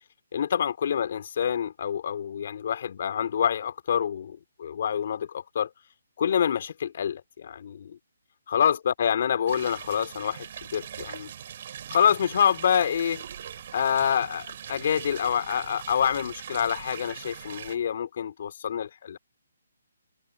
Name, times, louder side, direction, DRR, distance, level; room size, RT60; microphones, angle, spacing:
voice 1, 0.3-5.7 6.2-8.0 8.5-10.5 10.7-11.3 11.9-13.2 13.7-19.2, left 8 dB, 55° left, 3.3 m, -26 dB
sound 1, 9.5-17.8, right 9 dB, 50° right, 6.2 m, -41 dB
hypercardioid pair, 150°, 0 cm